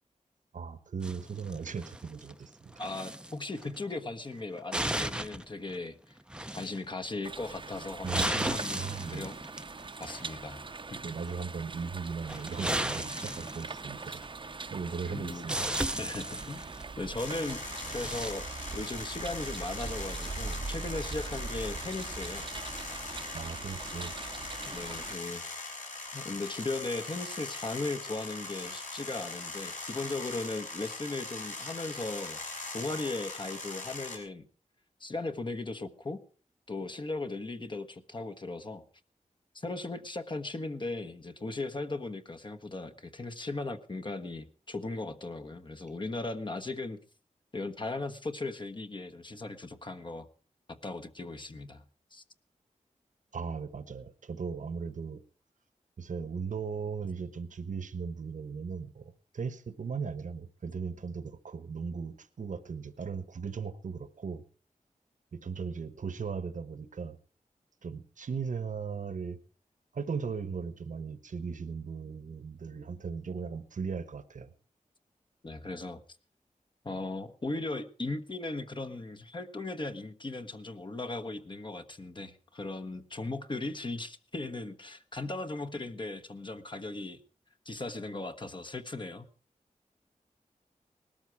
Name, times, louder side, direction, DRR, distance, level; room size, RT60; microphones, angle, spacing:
voice 1, 0.5-2.7 8.0-9.3 11.0-14.2 14.7-15.7 23.3-24.1 53.3-55.2 56.0-64.4 65.3-67.2 67.8-69.4 69.9-74.5, right 5 dB, 70° right, 13 dB, 1.2 m, -37 dB
sound 1, 1.0-2.3 2.7-3.3 3.6-3.8 4.4-5.4 5.7-5.8 6.3-6.9 7.6-10.3 12.2-14.3 15.1-15.2 15.5-16.8 17.7-18.3, right 1 dB, 5° right, 0.7 m, -35 dB
voice 2, 2.8-6.2 6.6-8.8 9.1-9.4 10.0-10.6 10.9-11.0 14.1-14.2 15.1-15.5 16.0-16.6 17.0-18.5 18.7-22.5 24.7-25.5 26.1-32.4 32.7-34.5 35.0-36.2 36.7-38.8 39.5-47.0 47.5-50.3 50.7-51.8 52.1-52.2 75.4-76.0 76.8-87.2 87.6-89.3, left 2 dB, 35° left, 7 dB, 1.2 m, -37 dB
sound 2, 7.2-25.2, right 4 dB, 40° right, 0.8 m, -41 dB
sound 3, 17.2-34.2, left 3 dB, 70° left, 6.4 m, -41 dB
19.5 x 13.0 x 4.7 m, 0.39 s
wide cardioid pair, 120°, 13 cm